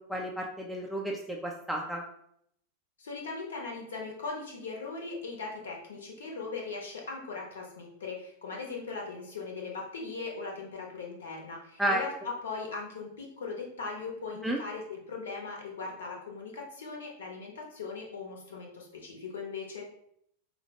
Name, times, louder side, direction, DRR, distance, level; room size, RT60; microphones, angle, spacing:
voice 1, 0.0-2.0 11.8-12.0 14.4-14.6, right 1 dB, ahead, -2 dB, 0.4 m, -32 dB
voice 2, 3.0-19.8, left 4 dB, 65° left, 0 dB, 0.8 m, -39 dB
4.5 x 2.1 x 2.8 m, 0.71 s
figure-of-eight pair, 90°, 0 cm